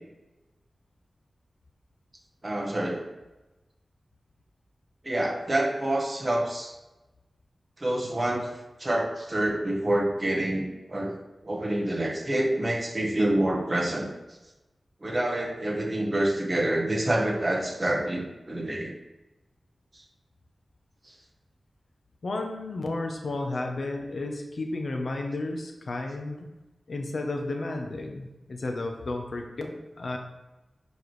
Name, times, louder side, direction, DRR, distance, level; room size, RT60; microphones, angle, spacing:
voice 1, 2.4-3.1 5.0-6.7 7.8-14.1 15.0-18.9 19.9-20.0 21.0-21.1, right 1 dB, 30° right, 0 dB, 1.2 m, -27 dB
voice 2, 22.2-26.5 26.9-30.2, left 2 dB, 65° left, 3 dB, 0.8 m, -32 dB
6.9 x 4.5 x 3.2 m, 1.0 s
wide cardioid pair, 105°, 0 cm